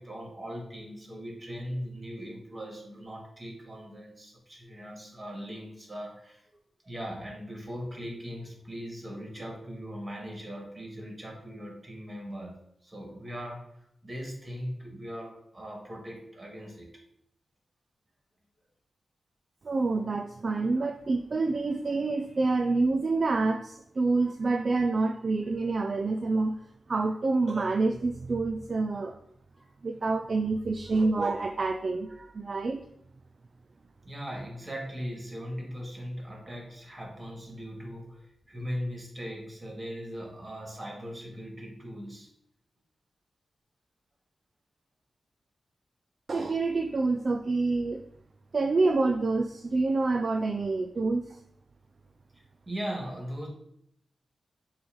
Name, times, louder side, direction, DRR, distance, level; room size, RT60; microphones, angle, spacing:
voice 1, 0.0-6.5 6.8-16.9 29.0-29.2 29.5-29.7 34.0-42.3 52.3-53.5, equal, 30° right, 0 dB, 2.4 m, -39 dB
voice 2, 19.6-26.6 26.9-29.1 29.8-32.8 46.3-48.0 48.5-51.4, right 3 dB, 50° right, 6 dB, 0.4 m, -27 dB
6.9 x 3.2 x 5.3 m, 0.74 s
cardioid pair, 65°, 0 cm